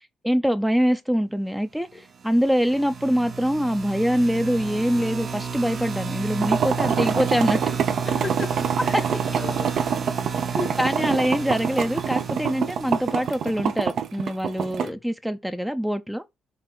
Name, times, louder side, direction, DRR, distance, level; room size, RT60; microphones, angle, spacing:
voice 1, 0.2-7.6 8.9-9.0 10.8-16.2, equal, 5° right, 0.4 m, -24 dB
sound 1, 2.3-14.1, right 5 dB, 45° right, 1.0 m, -32 dB
sound 2, 6.4-14.9, right 7 dB, 65° right, 0.6 m, -26 dB
voice 2, 8.1-9.0 9.3-9.8 10.5-10.8 11.1-11.6 14.6-15.0, left 3 dB, 35° left, 0.8 m, -35 dB
4.8 x 2.9 x 3.7 m
cardioid pair, 90°, 0 cm